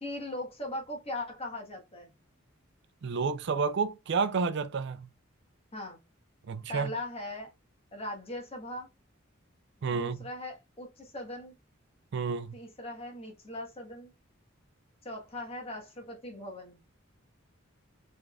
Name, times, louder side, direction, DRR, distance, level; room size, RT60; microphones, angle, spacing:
voice 1, 0.0-2.1 5.7-6.0 6.7-7.5 7.9-8.9 9.9-11.5 12.5-14.1 15.0-16.8, left 1 dB, 30° left, 1.5 m, -39 dB
voice 2, 3.0-5.1 6.5-6.9 9.8-10.3 12.1-12.6, right 5 dB, 55° right, 0.4 m, -30 dB
5.2 x 3.5 x 2.4 m
head